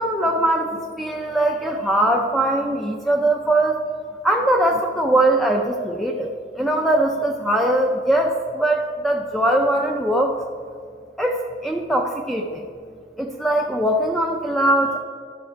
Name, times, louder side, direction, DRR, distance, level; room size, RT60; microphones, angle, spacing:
voice 1, 0.0-3.8 4.2-10.4 11.2-12.7 13.2-15.0, right 1 dB, ahead, 2 dB, 0.4 m, -21 dB
12.0 x 5.6 x 4.6 m, 2.3 s
head